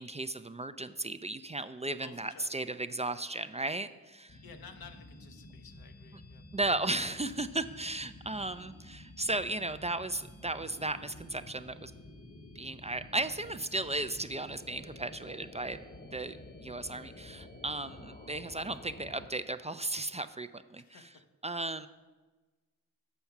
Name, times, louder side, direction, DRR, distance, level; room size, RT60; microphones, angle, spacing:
voice 1, 0.0-4.4 6.5-11.9 12.6-15.8 16.1-20.8 21.4-21.9, right 2 dB, 20° right, 12 dB, 0.3 m, -35 dB
voice 2, 2.0-2.8 4.4-6.4 18.4-18.7 20.8-21.2, left 6 dB, 85° left, 7 dB, 0.8 m, -54 dB
sound 1, 4.3-19.3, left 1 dB, 25° left, 0.9 m, -51 dB
7.2 x 5.4 x 5.8 m, 1.2 s
cardioid pair, 40°, 35 cm